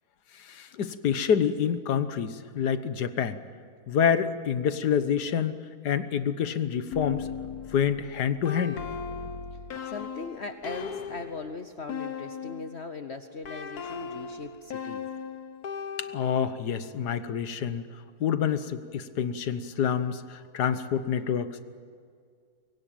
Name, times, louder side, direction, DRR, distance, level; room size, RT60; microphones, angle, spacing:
voice 1, 0.4-3.4 3.9-5.6 5.8-7.3 7.7-8.8 16.1-17.8 18.2-21.6, left 8 dB, 90° left, 12 dB, 1.7 m, -27 dB
sound 1, 6.9-12.9 13.4-16.7, left 6 dB, 70° left, 1.8 m, -38 dB
voice 2, 9.8-15.1, left 4 dB, 45° left, 8 dB, 1.1 m, -39 dB
24.5 x 21.5 x 9.1 m, 2.1 s
omnidirectional pair, 1.7 m